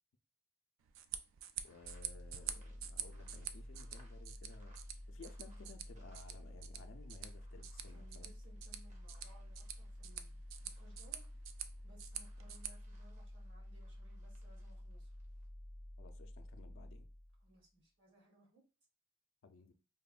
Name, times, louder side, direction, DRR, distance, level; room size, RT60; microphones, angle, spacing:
sound 1, 0.8-12.7, right 10 dB, 85° right, 0.3 m, -48 dB
voice 1, 1.6-4.8 5.1-8.3 16.0-17.1 19.4-19.7, left 4 dB, 70° left, 0.4 m, -58 dB
sound 2, 1.6-6.6 6.9-15.5, right 2 dB, 35° right, 0.6 m, -72 dB
sound 3, 1.8-17.6, left 1 dB, 15° left, 0.4 m, -51 dB
voice 2, 7.6-11.3 11.8-15.1 17.4-18.6, right 1 dB, 70° right, 1.2 m, -65 dB
3.3 x 2.1 x 2.3 m
head